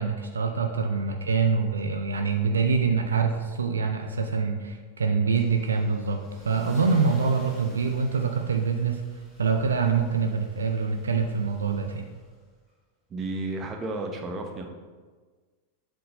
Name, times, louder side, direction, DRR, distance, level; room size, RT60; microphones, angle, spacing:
voice 1, 0.0-9.0 9.4-12.1, right 5 dB, 70° right, 5 dB, 0.4 m, -25 dB
Car / Engine starting / Accelerating revving vroom, 5.4-12.5, right 1 dB, ahead, 1.7 m, -50 dB
voice 2, 13.1-14.7, right 2 dB, 25° right, 4 dB, 0.8 m, -32 dB
7.7 x 3.7 x 3.8 m, 1.4 s
figure-of-eight pair, 90°, 0 cm